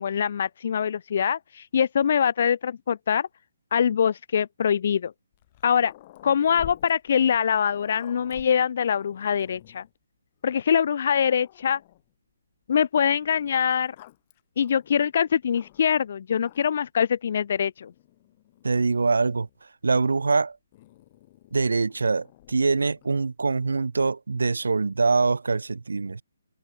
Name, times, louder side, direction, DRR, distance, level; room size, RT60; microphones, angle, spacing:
voice 1, 0.0-3.3 3.7-5.1 5.6-5.9 6.2-9.8 10.4-11.8 12.7-13.9 14.6-17.9, left 8 dB, 50° left, 1.6 m, -23 dB
Growling, 5.3-9.9 10.6-10.7 11.1-12.1 13.2-16.0 16.4-16.9 17.8-19.6 20.7-23.3, left 16 dB, 30° left, 5.9 m, -50 dB
voice 2, 18.6-19.5 19.8-20.6 21.5-26.2, right 4 dB, 85° right, 1.2 m, -24 dB
hypercardioid pair, 155°, 0 cm